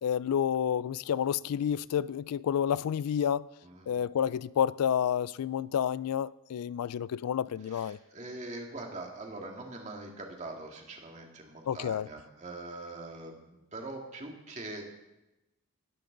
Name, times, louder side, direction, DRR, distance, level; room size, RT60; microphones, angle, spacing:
voice 1, 0.0-3.4 3.9-8.0 11.7-12.1, left 8 dB, 90° left, 0.3 m, -29 dB
voice 2, 3.6-3.9 7.6-14.8, right 2 dB, 30° right, 2.1 m, -43 dB
17.0 x 12.0 x 3.9 m
head